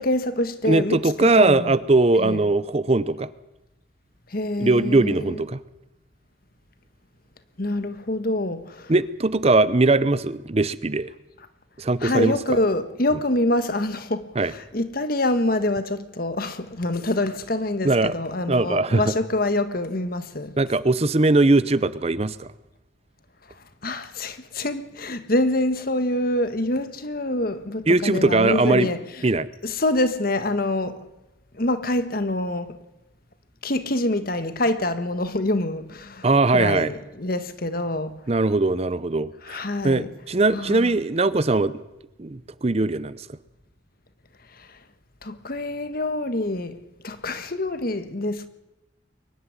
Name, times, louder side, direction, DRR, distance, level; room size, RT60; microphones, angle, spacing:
voice 1, 0.0-1.7 2.2-2.4 4.3-5.4 7.6-8.9 12.0-20.6 23.8-29.0 29.6-31.1 31.5-32.8 33.6-36.3 36.5-38.2 39.4-40.1 40.5-40.9 44.6-44.7 45.2-48.5, left 1 dB, 50° left, 1.4 m, -26 dB
voice 2, 0.6-3.3 4.6-5.6 8.9-11.1 11.8-12.3 14.4-14.5 17.8-18.1 18.5-19.1 20.6-22.5 27.9-28.9 29.2-29.5 36.2-36.9 38.3-41.8 42.2-43.2, right 2 dB, 30° right, 0.6 m, -20 dB
23.0 x 11.5 x 9.8 m
head